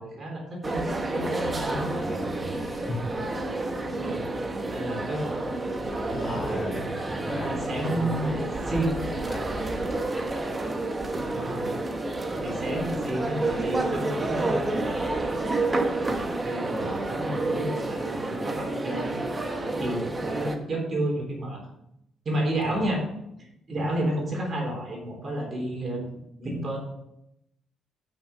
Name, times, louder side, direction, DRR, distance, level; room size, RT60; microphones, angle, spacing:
voice 1, 0.0-1.0 1.6-2.0 4.0-4.3 4.7-5.3 6.1-6.8 7.3-8.3 8.7-9.0 11.3-11.7 12.4-15.6 16.4-19.1 19.5-21.6 22.3-23.0 23.4-26.1 26.4-26.8, right 1 dB, 40° right, 0 dB, 3.7 m, -31 dB
sound 1, 0.6-20.5, right 2 dB, 25° right, 1.2 m, -30 dB
voice 2, 1.1-3.0 6.2-10.0 12.3-12.6 22.6-22.8, left 1 dB, 25° left, -1 dB, 2.6 m, -37 dB
8.7 x 6.5 x 5.4 m, 0.80 s
cardioid pair, 90°, 0 cm